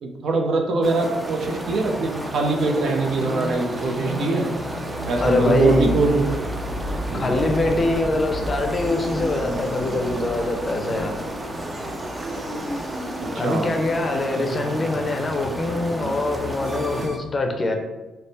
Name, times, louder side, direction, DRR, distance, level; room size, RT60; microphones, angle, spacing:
voice 1, 0.0-4.5 5.1-6.2 7.1-7.3 13.2-13.7, right 3 dB, 65° right, 3 dB, 0.6 m, -22 dB
sound 1, 0.8-17.1, right 1 dB, 15° right, 0.4 m, -33 dB
sound 2, 1.2-17.2, equal, 35° right, 0.9 m, -33 dB
voice 2, 5.2-5.9 7.1-11.2 13.4-17.7, left 2 dB, 30° left, 4 dB, 0.6 m, -23 dB
3.4 x 2.0 x 4.1 m, 1.1 s
cardioid pair, 90°, 0 cm